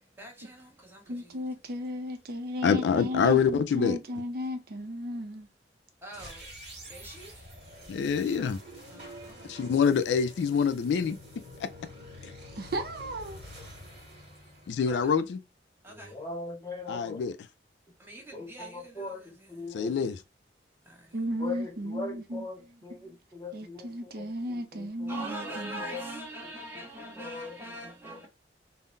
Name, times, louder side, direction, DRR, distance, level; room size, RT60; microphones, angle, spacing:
voice 1, 0.0-1.4 6.0-6.5 6.9-7.4 8.9-9.5 14.9-15.0 15.8-16.1 18.0-18.8 20.9-21.1 25.1-28.3, right 1 dB, 15° right, 1.0 m, -42 dB
voice 2, 1.1-5.5 12.6-13.4 21.1-22.4 23.0-23.2 23.5-25.8, equal, 55° right, 0.5 m, -35 dB
voice 3, 2.6-4.0 7.9-8.6 9.4-11.2 12.2-12.3 14.7-15.4 16.9-17.3 19.7-20.2, left 6 dB, 75° left, 0.3 m, -25 dB
sound 1, 6.1-15.3, equal, 35° right, 1.6 m, -47 dB
voice 4, 15.9-17.3 18.3-20.0 21.4-26.1 26.4-26.9 27.1-28.3, left 3 dB, 20° left, 0.9 m, -41 dB
3.7 x 2.0 x 2.4 m
head